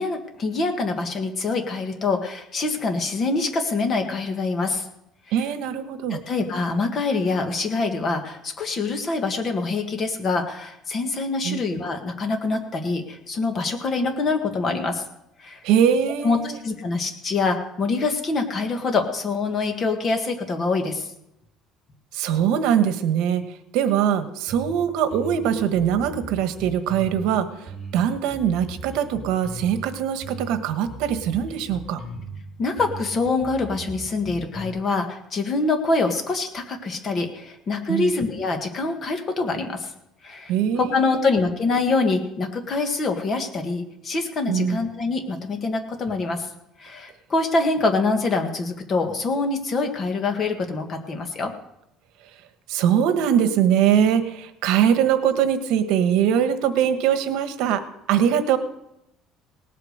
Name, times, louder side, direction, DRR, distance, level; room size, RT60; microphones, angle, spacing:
voice 1, 0.0-4.9 6.1-15.0 15.4-15.6 16.2-16.4 16.6-21.1 32.6-39.9 40.2-46.5 46.8-51.5, left 3 dB, 30° left, 5 dB, 1.7 m, -25 dB
voice 2, 5.3-6.2 11.4-11.6 15.6-16.6 22.1-23.4 23.7-32.0 37.9-38.1 40.5-41.3 44.5-44.8 52.7-58.6, right 9 dB, 80° right, 10 dB, 1.3 m, -22 dB
sound 1, 24.5-24.8 25.1-27.3 27.7-29.9 30.2-32.4 32.8-34.7, right 2 dB, 10° right, 6.2 m, -38 dB
18.5 x 8.4 x 6.6 m, 0.84 s
cardioid pair, 165°, 0 cm